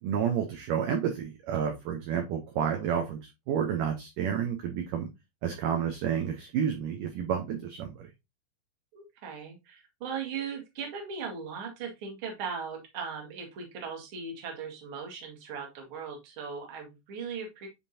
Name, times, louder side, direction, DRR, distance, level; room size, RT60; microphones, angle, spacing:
voice 1, 0.0-5.1 5.4-8.1, right 8 dB, 75° right, 3 dB, 2.0 m, -30 dB
voice 2, 8.9-17.7, right 6 dB, 50° right, 2 dB, 1.7 m, -38 dB
9.9 x 3.7 x 2.7 m, 0.23 s
omnidirectional pair, 4.7 m